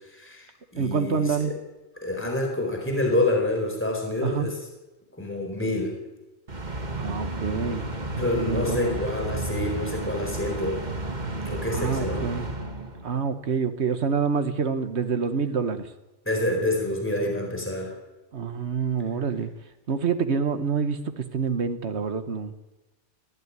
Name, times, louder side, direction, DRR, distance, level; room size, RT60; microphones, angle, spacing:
voice 1, 0.0-1.5 2.0-4.6 5.2-5.9 8.2-10.9 11.5-12.3 16.3-17.9, left 1 dB, 10° left, 1 dB, 4.3 m, -27 dB
voice 2, 0.8-1.5 4.2-4.5 7.0-7.8 8.2-9.0 11.7-12.5 13.0-15.9 18.3-19.5 19.9-22.5, right 5 dB, 80° right, 9 dB, 1.6 m, -27 dB
sound 1, 6.5-13.3, right 2 dB, 40° right, 2.0 m, -32 dB
20.5 x 15.5 x 9.7 m, 1.1 s
omnidirectional pair, 1.1 m